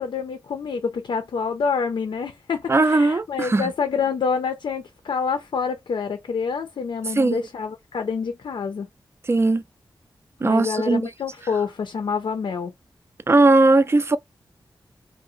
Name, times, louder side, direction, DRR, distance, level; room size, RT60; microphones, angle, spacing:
voice 1, 0.0-8.9 10.4-12.7, left 5 dB, 80° left, 0.5 m, -27 dB
voice 2, 2.7-3.7 7.2-7.4 9.3-9.6 10.4-11.0 13.3-14.2, right 2 dB, 30° right, 0.3 m, -18 dB
2.7 x 2.0 x 2.4 m
cardioid pair, 50°, 8 cm